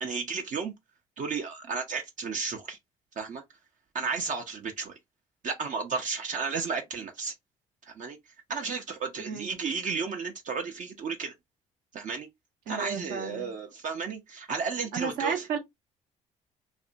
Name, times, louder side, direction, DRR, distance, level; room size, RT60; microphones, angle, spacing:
voice 1, 0.0-0.7 1.2-2.8 3.2-3.4 3.9-4.9 5.4-7.3 7.9-8.2 8.5-11.3 11.9-12.3 12.7-15.4, right 5 dB, 50° right, 0.6 m, -33 dB
voice 2, 12.7-13.5 14.9-15.6, right 6 dB, 70° right, 0.9 m, -33 dB
2.6 x 2.1 x 2.5 m
hypercardioid pair, 55°, 17 cm